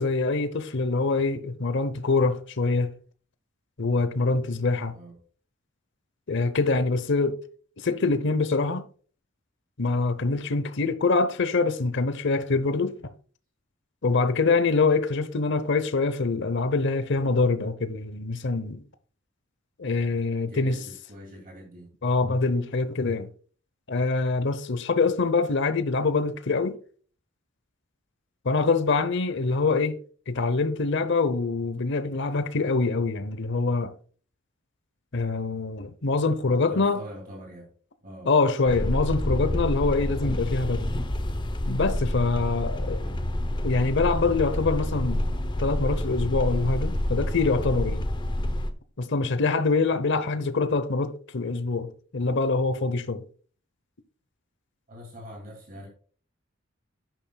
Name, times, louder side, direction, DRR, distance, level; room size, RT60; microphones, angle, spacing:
voice 1, 0.0-2.9 3.8-4.9 6.3-7.4 7.8-8.8 9.8-13.1 14.0-18.8 19.8-20.8 22.0-23.3 23.9-26.8 28.4-30.0 30.3-33.9 35.1-37.0 38.3-40.9 41.7-43.0 43.6-45.3 45.6-48.1 49.0-53.2, left 3 dB, 60° left, 0.8 m, -25 dB
voice 2, 20.5-21.9 36.5-37.7 38.0-38.3 42.5-43.3 54.9-55.9, equal, 45° right, 2.5 m, -44 dB
sound 1, 38.7-48.7, left 1 dB, 25° left, 0.7 m, -28 dB
10.5 x 9.0 x 2.3 m
head